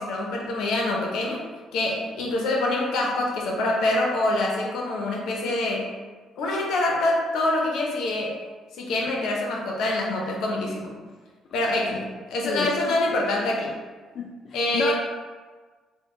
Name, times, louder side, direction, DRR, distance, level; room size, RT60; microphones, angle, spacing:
voice 1, 0.0-1.4 1.7-5.9 6.4-8.4 8.7-11.0 11.5-13.7 14.5-14.9, left 2 dB, 75° left, -1 dB, 0.7 m, -25 dB
voice 2, 12.4-12.9 14.2-14.9, left 5 dB, 55° left, -1 dB, 0.3 m, -31 dB
3.5 x 2.2 x 3.7 m, 1.4 s
supercardioid pair, 75°, 0 cm